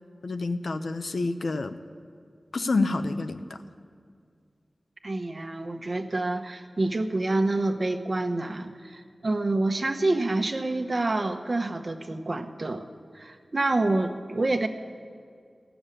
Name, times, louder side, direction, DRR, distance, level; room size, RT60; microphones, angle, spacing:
voice 1, 0.2-1.7 2.5-3.6, left 3 dB, 80° left, 9 dB, 0.7 m, -28 dB
voice 2, 5.0-12.9 13.1-14.7, right 2 dB, 50° right, 6 dB, 0.9 m, -27 dB
15.5 x 7.1 x 9.9 m, 2.2 s
wide cardioid pair, 60°, 0 cm